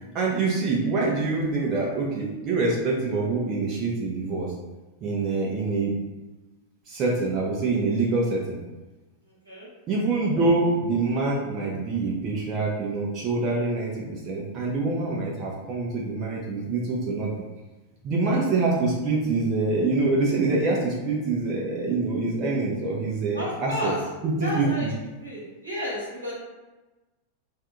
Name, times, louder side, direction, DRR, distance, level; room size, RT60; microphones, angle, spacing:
voice 1, 0.1-4.5 5.0-5.9 6.9-8.6 9.9-17.3 18.0-23.9 24.2-24.9, right 3 dB, 35° right, -4 dB, 0.7 m, -25 dB
voice 2, 23.3-24.0 24.4-24.9 25.2-26.3, left 1 dB, 85° right, -6 dB, 1.1 m, -32 dB
2.6 x 2.3 x 3.7 m, 1.1 s
figure-of-eight pair, 90°, 0 cm